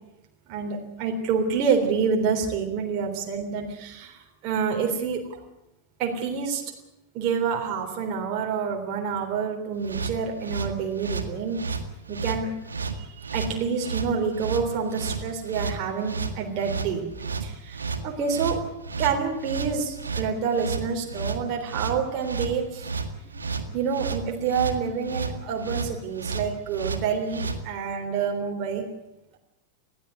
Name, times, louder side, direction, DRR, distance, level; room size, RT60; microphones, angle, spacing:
voice 1, 0.5-5.4 6.0-6.6 7.1-11.6 12.1-12.5 13.0-17.0 17.4-18.6 19.0-22.9 23.7-28.8, right 6 dB, 40° right, 1 dB, 3.5 m, -27 dB
sound 1, 9.8-27.6, right 4 dB, 75° right, 1.9 m, -32 dB
21.0 x 15.0 x 9.4 m, 0.90 s
figure-of-eight pair, 90°, 0 cm